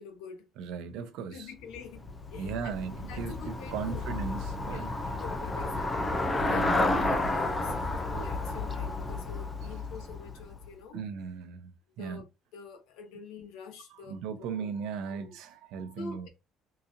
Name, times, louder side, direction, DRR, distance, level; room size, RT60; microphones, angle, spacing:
voice 1, 0.0-0.4 1.3-2.7 3.1-4.0 4.6-6.0 6.5-11.0 12.0-12.2 12.5-14.7 15.1-15.3 16.0-16.3, left 5 dB, 85° left, 1.0 m, -46 dB
voice 2, 0.6-1.5 2.4-3.3 3.7-4.9 6.4-6.8 10.9-11.7 12.0-12.2 13.9-16.3, right 6 dB, 70° right, 0.7 m, -37 dB
Traffic noise roadway noise / Bicycle, 1.6-10.8, left 2 dB, 15° left, 0.4 m, -31 dB
3.9 x 2.8 x 2.5 m
cardioid pair, 180°, 0 cm